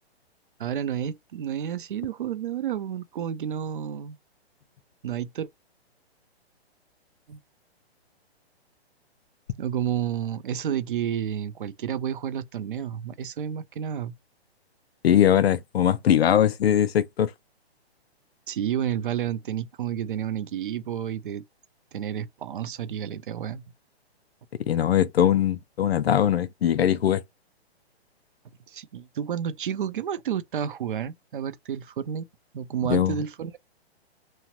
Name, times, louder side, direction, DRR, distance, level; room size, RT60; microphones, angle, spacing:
voice 1, 0.6-4.2 5.0-5.5 7.3-7.4 9.6-14.1 18.5-21.5 21.9-23.6 28.7-32.3 32.5-33.5, right 9 dB, 55° right, 0.5 m, -30 dB
voice 2, 15.0-17.3 24.6-27.2 32.8-33.2, left 10 dB, 70° left, 0.6 m, -21 dB
2.9 x 2.0 x 3.0 m
hypercardioid pair, 170°, 32 cm